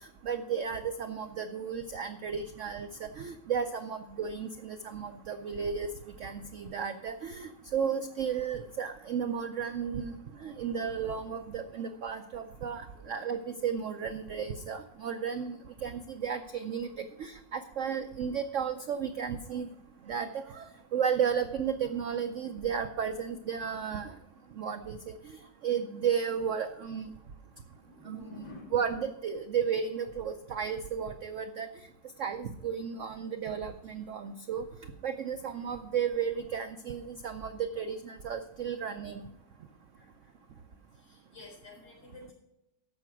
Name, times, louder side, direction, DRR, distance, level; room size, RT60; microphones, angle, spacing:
voice 1, 0.2-5.9 6.2-10.1 10.4-15.6 15.8-16.9 17.2-19.7 20.1-20.7 20.9-24.1 24.6-25.1 25.6-27.1 28.1-28.2 28.7-31.7 32.2-34.6 35.0-39.2, right 7 dB, 75° right, 8 dB, 0.7 m, -33 dB
voice 2, 12.9-13.4 27.6-29.0 35.3-35.7 40.0-40.1 41.0-42.3, left 2 dB, 65° left, -3 dB, 4.8 m, -50 dB
13.5 x 5.7 x 6.1 m, 0.88 s
omnidirectional pair, 2.0 m